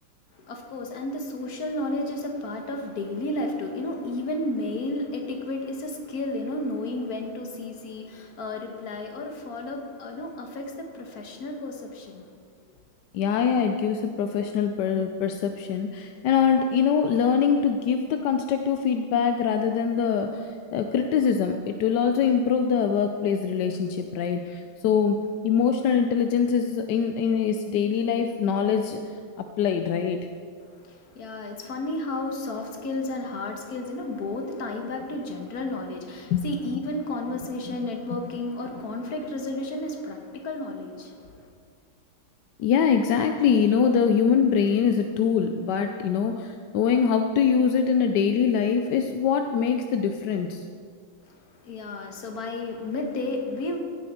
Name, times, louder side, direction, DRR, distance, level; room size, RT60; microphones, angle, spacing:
voice 1, 0.3-12.3 30.8-41.3 51.3-51.4 51.6-53.8, left 2 dB, 50° left, 3 dB, 1.6 m, -32 dB
voice 2, 13.1-30.2 36.3-36.4 37.7-37.8 38.1-38.3 42.6-50.6, left 7 dB, 70° left, 6 dB, 1.0 m, -23 dB
16.0 x 9.8 x 4.3 m, 2.1 s
omnidirectional pair, 2.3 m